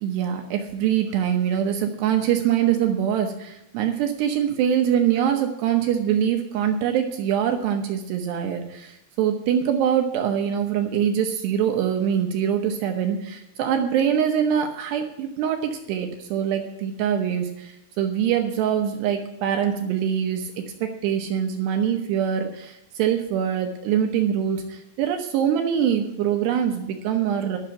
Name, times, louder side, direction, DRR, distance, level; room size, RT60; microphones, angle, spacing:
voice 1, 0.0-20.5 20.8-27.6, right 9 dB, 75° right, 4 dB, 2.6 m, -24 dB
12.0 x 6.6 x 7.7 m, 0.85 s
omnidirectional pair, 5.8 m